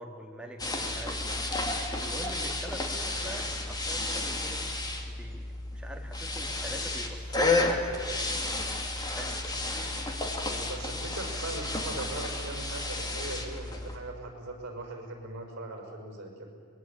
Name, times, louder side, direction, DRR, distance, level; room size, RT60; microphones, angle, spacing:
voice 1, 0.0-1.4 2.0-4.7 5.1-8.4 9.2-9.9 10.5-11.0, right 1 dB, 5° right, 2 dB, 2.0 m, -45 dB
sound 1, 0.6-14.0, left 2 dB, 20° left, 2.2 m, -32 dB
voice 2, 10.7-16.5, right 2 dB, 55° right, 3 dB, 5.9 m, -40 dB
25.0 x 21.0 x 8.6 m, 2.1 s
head